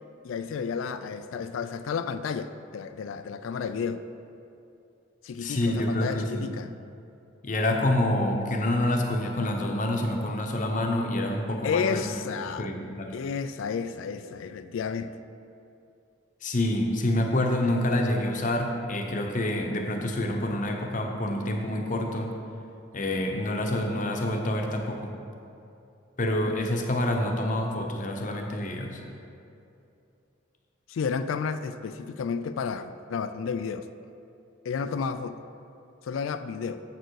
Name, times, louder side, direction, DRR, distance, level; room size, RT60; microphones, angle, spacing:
voice 1, 0.2-4.0 5.2-6.7 11.6-12.7 13.1-15.1 30.9-33.9 34.6-35.4 36.0-36.8, left 6 dB, 85° left, 11 dB, 0.3 m, -31 dB
voice 2, 5.4-6.5 7.4-12.0 12.4-13.1 16.4-22.3 22.9-25.1 26.2-29.0, left 1 dB, 40° left, 2 dB, 0.8 m, -27 dB
7.6 x 6.7 x 4.7 m, 2.7 s
head